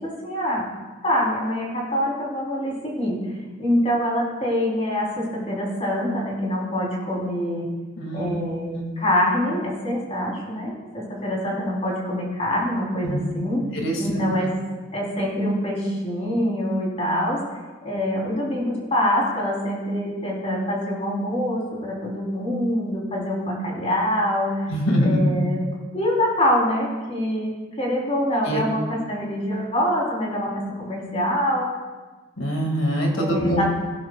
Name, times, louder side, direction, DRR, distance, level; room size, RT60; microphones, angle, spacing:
voice 1, 0.0-0.7 1.0-3.2 3.6-7.7 8.1-13.6 14.0-14.5 14.9-17.4 17.8-24.6 25.0-25.6 25.9-31.7 33.1-33.6, equal, 30° left, -4 dB, 3.9 m, -25 dB
voice 2, 8.0-8.4 8.7-8.8 13.0-13.2 13.7-14.4 24.7-25.2 28.4-28.6 32.4-33.6, equal, 70° left, 1 dB, 2.4 m, -24 dB
18.5 x 11.0 x 2.4 m, 1.3 s
head